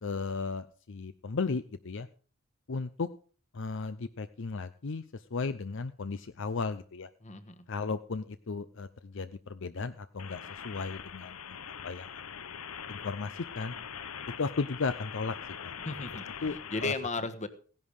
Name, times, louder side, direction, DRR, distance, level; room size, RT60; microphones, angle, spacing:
voice 1, 0.0-2.1 2.7-3.1 3.5-7.1 7.7-11.6 11.8-12.6 12.9-13.7 14.4-15.4 15.6-15.7 16.4-16.9, left 4 dB, 60° left, 12 dB, 0.6 m, -35 dB
voice 2, 7.2-7.6 15.8-17.5, left 3 dB, 35° left, 10 dB, 1.3 m, -35 dB
sound 1, 10.2-16.9, left 7 dB, 90° left, 0.9 m, -43 dB
16.5 x 11.0 x 4.9 m, 0.41 s
head